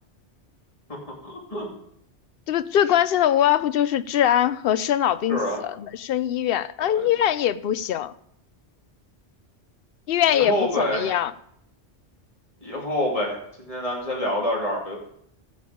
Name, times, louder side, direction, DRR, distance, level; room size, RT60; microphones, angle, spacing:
voice 1, 1.2-1.7 5.3-5.6 6.8-7.1 10.3-11.2 12.6-15.0, left 1 dB, 30° left, 3.0 m, -27 dB
voice 2, 2.5-8.1 10.1-11.3, left 10 dB, 65° left, 0.7 m, -22 dB
14.5 x 7.1 x 5.0 m
omnidirectional pair, 1.2 m